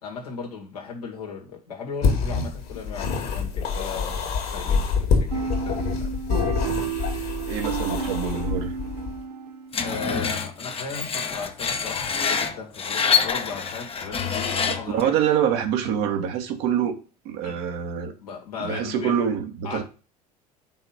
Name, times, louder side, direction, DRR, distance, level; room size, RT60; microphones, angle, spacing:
voice 1, 0.0-6.2 9.8-15.2 17.4-17.6 18.2-19.2 19.6-19.8, left 5 dB, 80° left, -1 dB, 2.1 m, -36 dB
sound 1, 2.0-9.2, left 5 dB, 55° left, 2.2 m, -26 dB
sound 2, 5.3-10.0, right 6 dB, 80° right, 1.0 m, -31 dB
voice 2, 7.5-8.7 14.7-17.0 17.2-18.1 18.6-19.8, right 8 dB, 60° right, 5 dB, 1.4 m, -25 dB
Screech, 9.7-15.0, left 6 dB, 30° left, 1.0 m, -26 dB
5.6 x 4.4 x 5.6 m, 0.34 s
figure-of-eight pair, 65°, 19 cm